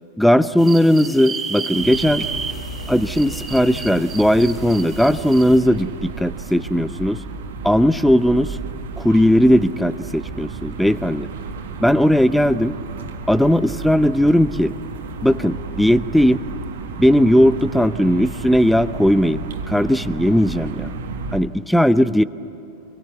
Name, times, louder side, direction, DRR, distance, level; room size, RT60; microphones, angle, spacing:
voice 1, 0.2-2.2 2.9-7.2 7.6-8.6 9.0-11.3 11.8-12.8 13.3-14.7 15.2-16.4 17.0-20.9 21.3-22.2, equal, ahead, 15 dB, 0.7 m, -17 dB
sound 1, 0.6-5.6, right 5 dB, 15° right, 2.5 m, -32 dB
sound 2, 1.7-21.4, right 4 dB, 60° right, 1.9 m, -32 dB
26.5 x 23.0 x 8.4 m, 2.8 s
figure-of-eight pair, 90°, 0 cm